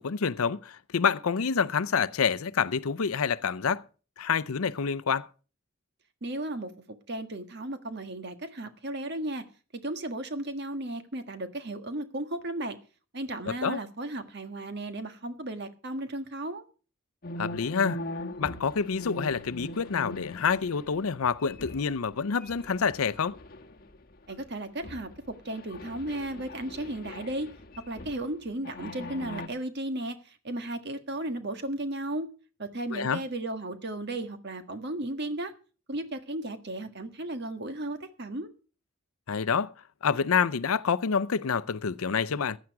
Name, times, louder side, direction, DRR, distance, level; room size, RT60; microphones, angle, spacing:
voice 1, 0.0-3.8 4.2-5.3 13.5-13.8 17.4-18.0 18.4-23.4 32.9-33.2 39.3-39.7 40.0-42.6, left 6 dB, 80° left, 0.6 m, -27 dB
voice 2, 6.2-6.7 7.1-9.4 9.8-12.8 13.1-16.6 24.3-25.1 25.4-27.5 27.9-30.2 30.4-32.3 32.6-35.5 35.9-38.5, right 1 dB, 50° right, 1.6 m, -35 dB
sound 1, 17.2-22.1 22.4-24.0 24.3-24.5 24.8-28.3 28.6-29.5, left 1 dB, 45° left, 1.2 m, -41 dB
15.5 x 10.0 x 4.7 m
head